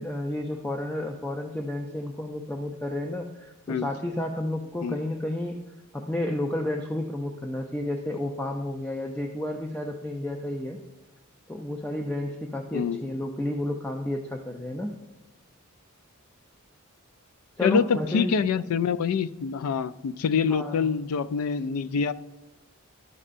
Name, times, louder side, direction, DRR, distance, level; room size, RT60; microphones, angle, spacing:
voice 1, 0.0-5.6 5.9-10.8 11.5-14.9 17.6-18.3 20.5-20.9, left 1 dB, 5° left, 2 dB, 0.4 m, -31 dB
voice 2, 17.6-22.1, left 6 dB, 85° left, 14 dB, 0.3 m, -25 dB
12.0 x 5.4 x 2.5 m, 1.0 s
head